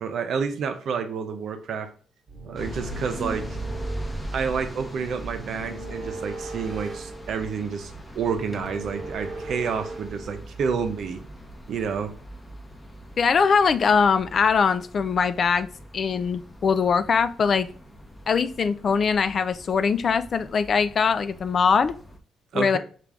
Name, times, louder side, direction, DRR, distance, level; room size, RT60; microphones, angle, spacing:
voice 1, 0.0-1.9 2.4-3.6 4.3-11.2 11.7-12.1 22.5-22.8, right 6 dB, 65° right, 0.6 m, -29 dB
sound 1, 2.3-4.3 5.3-7.7 8.3-10.3, right 2 dB, 35° right, 1.0 m, -39 dB
sound 2, 2.6-22.2, right 1 dB, 10° left, 0.8 m, -40 dB
voice 2, 13.2-15.7 15.9-17.7 18.3-21.9 22.5-22.8, left 5 dB, 50° left, 0.3 m, -22 dB
5.9 x 2.5 x 3.5 m
cardioid pair, 90°, 0 cm